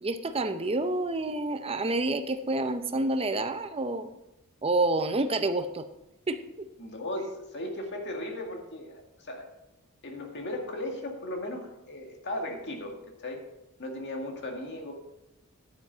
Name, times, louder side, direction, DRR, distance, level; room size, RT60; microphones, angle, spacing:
voice 1, 0.0-4.1 4.6-5.9 6.3-6.7, right 2 dB, 25° right, 9 dB, 0.7 m, -28 dB
voice 2, 6.8-9.5 10.0-13.5 13.8-14.9, left 1 dB, 55° left, 2 dB, 1.9 m, -36 dB
9.6 x 9.1 x 4.0 m, 0.92 s
head